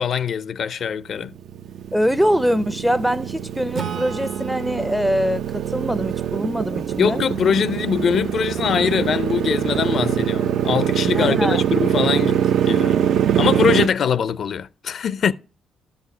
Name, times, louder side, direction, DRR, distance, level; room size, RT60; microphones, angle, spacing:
voice 1, 0.0-1.3 7.0-13.1 13.4-15.3, left 7 dB, 60° left, 0.5 m, -22 dB
Motorcycle, 1.2-13.9, right 9 dB, 70° right, 0.5 m, -23 dB
voice 2, 1.9-7.2 11.1-11.6, equal, ahead, 0.5 m, -23 dB
Acoustic guitar / Strum, 3.7-7.2, right 7 dB, 55° right, 0.9 m, -36 dB
12.5 x 4.3 x 7.1 m
cardioid pair, 90°, 0 cm